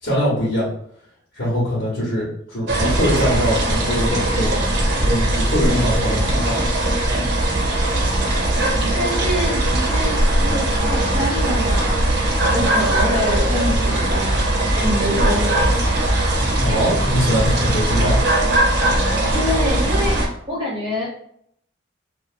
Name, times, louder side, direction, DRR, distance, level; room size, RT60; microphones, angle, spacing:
voice 1, 0.0-0.7 1.3-4.5 5.0-6.7 16.6-18.2, equal, 85° left, -10 dB, 1.1 m, -22 dB
sound 1, 2.7-20.3, right 1 dB, 65° right, 0.7 m, -19 dB
voice 2, 8.9-15.5 19.3-21.1, equal, 25° right, -6 dB, 0.7 m, -26 dB
2.6 x 2.4 x 2.4 m, 0.68 s
head